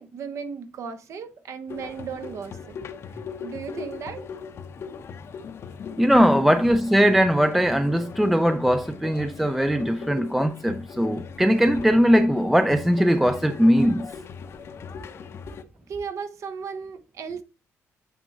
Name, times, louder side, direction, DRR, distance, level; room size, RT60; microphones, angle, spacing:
voice 1, 0.0-2.8 3.4-4.3 15.9-17.4, right 6 dB, 70° right, 1.0 m, -35 dB
sound 1, 1.7-15.6, left 6 dB, 55° left, 0.7 m, -39 dB
voice 2, 6.0-14.1, equal, 5° right, 0.4 m, -20 dB
9.0 x 3.6 x 4.0 m
cardioid pair, 120°, 5 cm